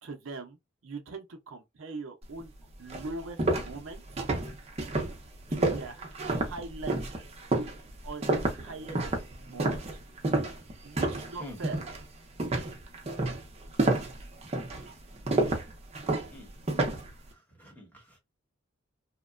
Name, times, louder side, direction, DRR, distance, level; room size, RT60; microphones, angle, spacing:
voice 1, 0.0-0.6 0.8-2.5 2.8-4.0 5.5-7.2 8.0-9.0 9.5-9.8 10.8-11.8, right 3 dB, 70° right, 0.6 m, -41 dB
sound 1, 2.4-2.5 2.9-11.3 11.6-12.0 12.4-17.1, right 2 dB, 30° right, 0.6 m, -29 dB
voice 2, 16.9-18.2, left 1 dB, 10° left, 1.0 m, -48 dB
2.8 x 2.1 x 2.4 m
head